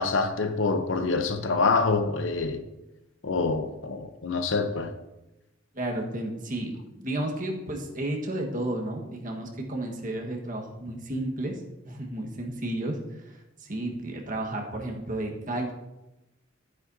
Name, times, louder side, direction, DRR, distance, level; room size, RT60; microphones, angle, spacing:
voice 1, 0.0-2.6 3.2-4.9, left 4 dB, 75° left, 0.8 m, -26 dB
voice 2, 5.7-13.0 13.6-15.7, right 1 dB, 45° right, 1.5 m, -32 dB
11.5 x 9.5 x 2.7 m
head